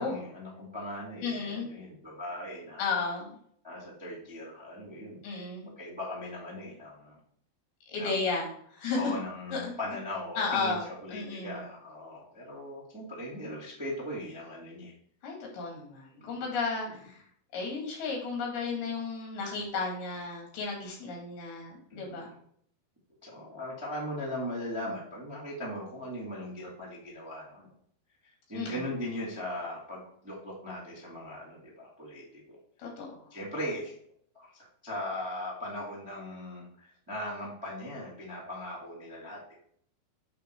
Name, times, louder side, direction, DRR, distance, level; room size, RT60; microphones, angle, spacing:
voice 1, 0.0-2.9 3.6-5.2 5.6-7.2 7.9-8.2 8.9-14.9 16.2-16.3 21.9-22.3 23.2-27.7 28.5-32.6 33.3-33.9 34.3-39.5, left 1 dB, 15° right, -6 dB, 1.1 m, -39 dB
voice 2, 1.2-1.7 2.8-3.4 5.2-5.7 7.9-9.2 9.5-9.7 10.4-11.6 15.2-17.2 17.5-22.3 28.5-28.8 32.8-33.3, left 4 dB, 70° left, 0 dB, 3.9 m, -33 dB
8.5 x 3.7 x 4.5 m, 0.62 s
omnidirectional pair, 4.6 m